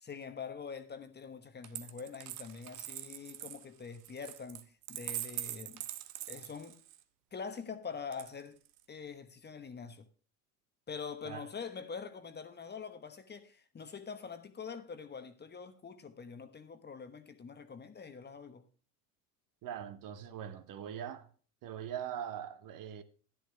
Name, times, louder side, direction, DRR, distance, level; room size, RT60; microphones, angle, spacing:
voice 1, 0.0-5.8 6.3-6.8 7.3-8.6 8.9-10.1 10.9-18.6, left 6 dB, 20° left, 1.1 m, -45 dB
Coin (dropping), 1.6-7.0 8.1-8.8, right 15 dB, 65° right, 1.0 m, -43 dB
voice 2, 19.6-21.3 21.6-23.0, right 9 dB, 45° right, 1.1 m, -41 dB
11.0 x 10.5 x 3.3 m
hypercardioid pair, 80°, 46 cm